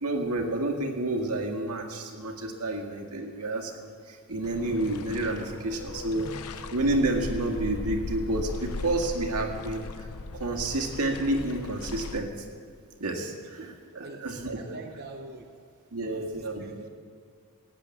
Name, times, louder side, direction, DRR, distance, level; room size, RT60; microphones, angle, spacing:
voice 1, 0.0-6.3 6.7-10.1 10.4-12.3 13.0-13.6 14.0-14.6 15.9-16.9, right 2 dB, 85° right, 2 dB, 1.9 m, -29 dB
sound 1, 4.4-12.2, left 3 dB, 80° left, 0.7 m, -38 dB
voice 2, 13.4-14.2 14.5-15.5 16.0-16.9, right 3 dB, 45° right, 2 dB, 0.9 m, -44 dB
17.0 x 8.1 x 8.3 m, 2.2 s
head